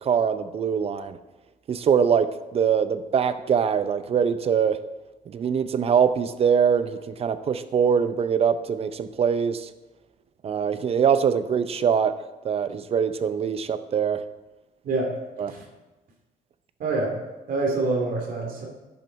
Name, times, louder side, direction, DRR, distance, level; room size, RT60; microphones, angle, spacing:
voice 1, 0.0-1.2 1.7-2.3 2.5-4.8 5.3-9.7 10.4-12.1 12.4-14.2 15.4-15.5, right 7 dB, 35° right, 13 dB, 0.6 m, -23 dB
voice 2, 16.8-17.1 17.5-18.7, right 3 dB, 55° right, 1 dB, 2.6 m, -26 dB
11.0 x 5.4 x 5.3 m, 1.1 s
cardioid pair, 110°, 17 cm